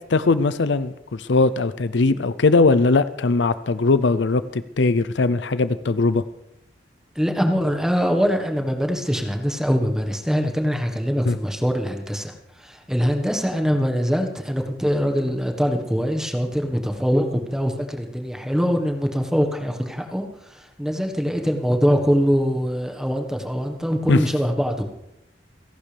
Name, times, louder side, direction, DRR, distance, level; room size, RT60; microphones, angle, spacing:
voice 1, 0.1-6.2 11.3-11.4 24.1-24.2, left 3 dB, 75° left, 14 dB, 0.6 m, -20 dB
voice 2, 7.1-12.3 12.6-20.2 20.5-24.8, equal, 5° right, 5 dB, 1.4 m, -23 dB
29.0 x 11.0 x 3.4 m, 0.84 s
head